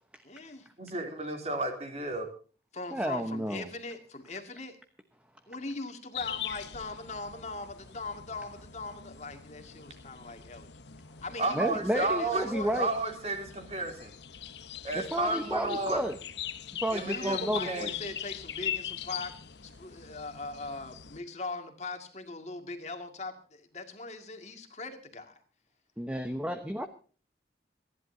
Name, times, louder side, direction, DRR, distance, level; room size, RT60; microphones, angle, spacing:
voice 1, 0.2-0.7 2.7-4.8 5.5-10.7 11.2-12.8 17.1-19.3 19.6-25.4, left 3 dB, 40° left, 6 dB, 2.1 m, -40 dB
voice 2, 0.8-2.3 11.4-14.1 14.8-16.0 16.9-18.0, right 2 dB, 35° right, 5 dB, 3.2 m, -32 dB
voice 3, 2.9-3.7 11.5-12.9 14.9-16.2 16.8-17.9 26.0-26.9, equal, 5° right, 7 dB, 1.0 m, -31 dB
sound 1, 6.1-21.2, left 10 dB, 70° left, 0.9 m, -42 dB
27.0 x 11.0 x 2.7 m, 0.40 s
head